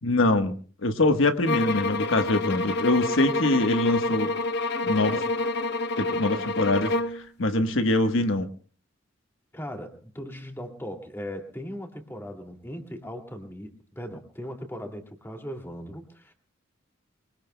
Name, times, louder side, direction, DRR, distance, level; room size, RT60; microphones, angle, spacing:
voice 1, 0.0-4.3 4.8-5.2 6.0-6.9 7.4-8.5, left 2 dB, 85° left, 7 dB, 1.3 m, -23 dB
sound 1, 1.4-7.2, left 2 dB, 60° left, 1.0 m, -28 dB
voice 2, 9.5-16.3, equal, 10° left, 3 dB, 2.4 m, -38 dB
24.0 x 23.5 x 2.2 m, 0.41 s
head